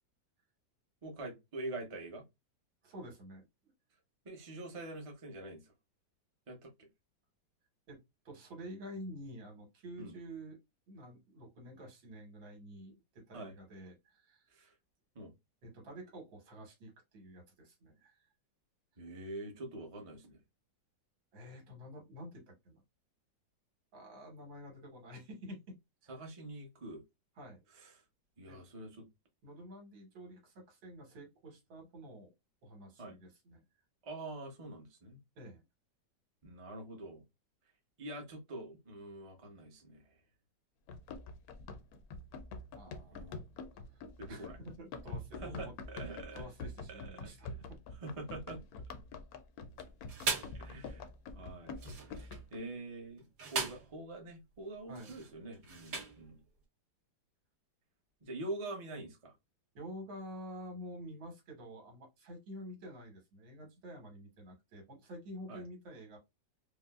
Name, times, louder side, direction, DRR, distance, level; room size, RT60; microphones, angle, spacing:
voice 1, 1.0-2.2 4.2-5.7 6.5-6.9 10.0-10.1 13.3-13.5 14.5-14.7 15.1-15.3 19.0-20.4 26.1-27.0 27.8-27.9 28.4-29.1 33.0-33.1 34.0-35.2 36.4-37.2 38.0-40.0 43.1-43.3 44.2-44.6 45.4-46.5 46.9-47.3 48.0-48.6 50.5-51.1 51.4-51.8 52.1-53.3 53.5-56.4 58.2-59.3 65.5-65.6, right 2 dB, 35° right, 0.5 m, -45 dB
voice 2, 2.8-3.5 7.9-8.0 8.3-10.6 10.9-14.5 15.6-18.3 21.3-22.8 23.9-25.7 27.4-27.7 28.5-28.6 29.4-32.3 32.6-33.6 35.4-35.6 42.7-43.4 43.9-45.7 46.1-47.8 54.9-55.1 59.7-66.2, equal, 80° right, 2.1 m, -49 dB
Run, 40.9-52.6, left 3 dB, 70° left, 0.9 m, -46 dB
sound 1, 49.8-50.6 51.7-52.5 53.2-54.0 54.9-56.3, right 4 dB, 50° right, 1.5 m, -39 dB
4.8 x 2.0 x 2.3 m
omnidirectional pair, 2.0 m